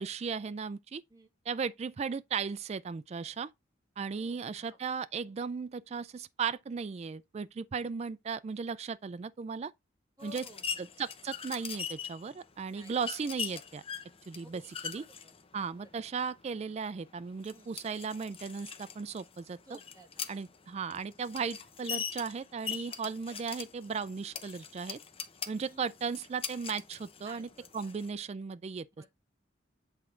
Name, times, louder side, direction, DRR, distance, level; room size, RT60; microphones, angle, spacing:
voice 1, 0.0-1.0 1.5-3.5 4.0-9.7 10.2-10.4 10.8-13.8 14.3-15.0 15.5-19.6 20.3-25.0 25.5-28.9, right 5 dB, 35° right, 0.3 m, -36 dB
voice 2, 4.1-4.8 10.2-10.8 12.7-13.0 14.4-14.7 14.9-15.3 15.8-16.0 17.5-17.7 19.6-20.2 20.8-21.0 25.6-25.9 27.2-27.9 29.0-29.1, equal, 20° right, 1.6 m, -55 dB
sound 1, 10.2-28.1, left 7 dB, 30° left, 0.7 m, -42 dB
8.1 x 3.7 x 4.4 m
head